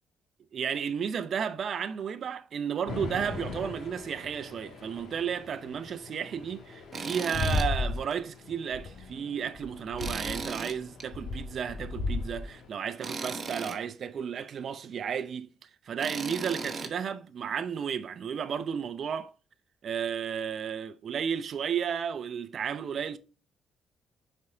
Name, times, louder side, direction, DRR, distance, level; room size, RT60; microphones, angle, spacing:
voice 1, 0.5-19.3 19.8-23.2, right 7 dB, 55° right, 0.5 m, -33 dB
sound 1, 2.9-12.7, left 3 dB, 70° left, 1.5 m, -36 dB
Tools, 6.9-7.7 8.1-8.2 10.0-11.1 13.0-13.8 16.0-16.9, right 4 dB, 40° right, 1.1 m, -36 dB
6.0 x 4.5 x 4.3 m
cardioid pair, 90°, 0 cm